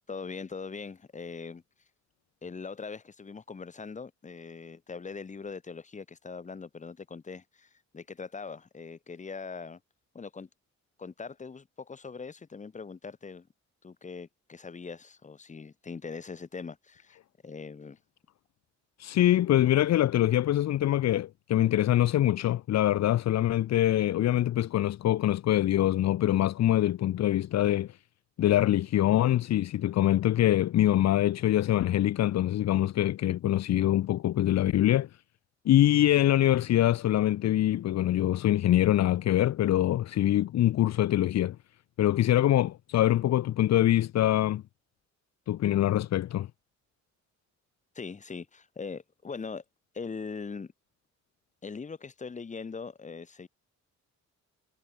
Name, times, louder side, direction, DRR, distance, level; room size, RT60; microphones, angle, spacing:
voice 1, 0.1-1.6 2.4-9.8 10.1-10.5 11.0-13.5 13.8-17.2 17.4-18.0 47.9-49.6 49.9-50.7 51.6-53.5, left 5 dB, 25° left, 7.5 m, -41 dB
voice 2, 19.0-28.0 28.4-35.2 35.6-41.6 42.0-44.6 45.5-46.5, left 13 dB, 65° left, 1.5 m, -24 dB
cardioid pair, 165°, 29 cm